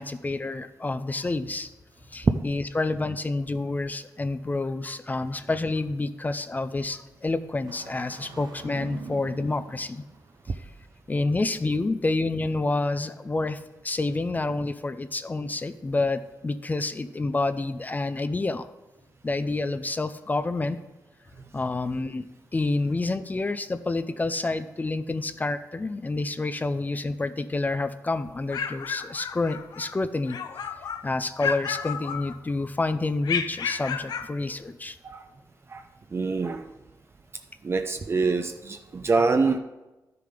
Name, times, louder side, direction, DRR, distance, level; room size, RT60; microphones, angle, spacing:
voice 1, 0.0-1.7 2.1-10.0 10.5-10.7 11.1-18.7 19.2-20.8 21.5-22.3 22.5-30.4 31.0-35.0, left 2 dB, 25° left, 12 dB, 0.5 m, -28 dB
Engine starting, 7.7-10.7, right 6 dB, 90° right, 0.9 m, -44 dB
sound 1, 28.3-29.9 30.3-31.1 31.4-32.7 33.2-34.3, left 7 dB, 90° left, 0.6 m, -32 dB
voice 2, 36.1-36.7 37.6-39.6, right 4 dB, 40° right, 6 dB, 0.6 m, -25 dB
11.5 x 6.8 x 5.1 m, 1.1 s
cardioid pair, 85°, 7 cm